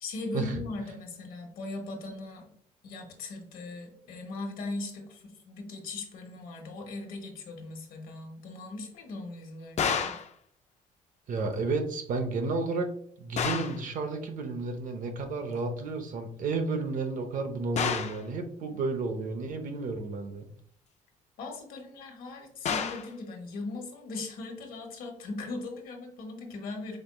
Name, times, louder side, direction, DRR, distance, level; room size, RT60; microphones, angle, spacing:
voice 1, 0.0-2.5 2.8-10.2 21.4-27.0, left 3 dB, 70° left, 2 dB, 1.1 m, -39 dB
sound 1, 9.8-10.3 13.4-13.8 17.8-18.2 22.6-23.1, left 7 dB, 50° left, 0.5 m, -30 dB
voice 2, 11.3-12.9 13.2-20.4, right 3 dB, 60° right, 6 dB, 0.8 m, -32 dB
5.0 x 3.6 x 2.3 m, 0.63 s
cardioid pair, 85°, 15 cm